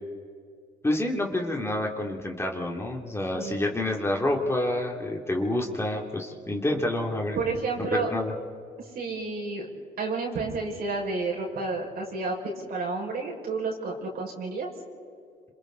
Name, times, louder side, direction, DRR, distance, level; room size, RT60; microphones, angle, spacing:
voice 1, 0.8-7.4 7.8-8.3, left 1 dB, 15° left, 0 dB, 3.1 m, -28 dB
voice 2, 3.3-3.7 7.4-8.1 8.9-9.7 10.0-14.7, right 3 dB, 65° right, -2 dB, 5.8 m, -30 dB
27.5 x 27.0 x 4.1 m, 2.2 s
cardioid pair, 80°, 17 cm